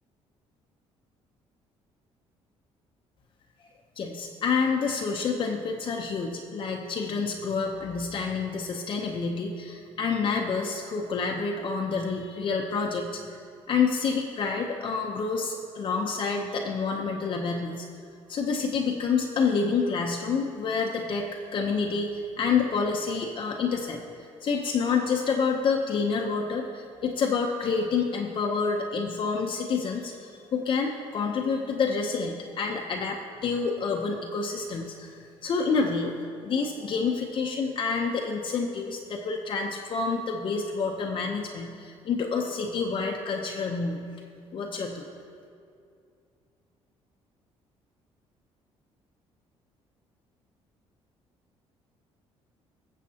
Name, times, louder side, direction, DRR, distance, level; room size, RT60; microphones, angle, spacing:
voice 1, 4.0-13.2 13.7-17.9 18.3-36.1 36.4-44.0 44.5-45.1, left 5 dB, 50° left, 1 dB, 0.8 m, -28 dB
20.0 x 7.2 x 2.9 m, 2.4 s
cardioid pair, 120°, 11 cm